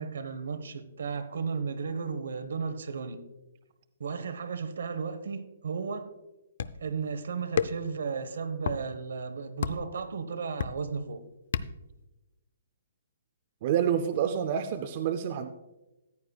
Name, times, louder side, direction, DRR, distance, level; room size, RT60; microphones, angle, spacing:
voice 1, 0.0-3.2 4.0-6.1 6.8-11.2, right 5 dB, 75° right, 1.0 m, -34 dB
sound 1, 6.6-6.9 7.6-8.0 8.6-8.8 9.6-9.9 10.6-11.0 11.5-11.9, left 7 dB, 60° left, 0.4 m, -31 dB
voice 2, 13.6-15.5, right 9 dB, 35° right, 0.5 m, -28 dB
14.0 x 9.6 x 2.3 m
hypercardioid pair, 165°, 0 cm